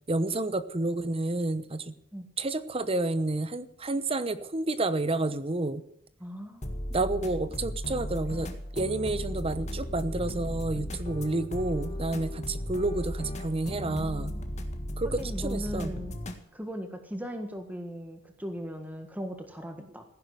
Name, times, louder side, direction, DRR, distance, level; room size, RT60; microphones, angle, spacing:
voice 1, 0.1-1.9 2.4-5.8 6.9-14.3 15.0-15.9, right 2 dB, 30° right, 13 dB, 0.9 m, -30 dB
voice 2, 6.2-6.7 13.9-14.4 15.2-16.1 16.5-20.0, equal, 10° right, 5 dB, 1.6 m, -38 dB
sound 1, 6.6-16.4, equal, 35° left, 1.8 m, -35 dB
15.5 x 11.0 x 8.0 m, 0.71 s
head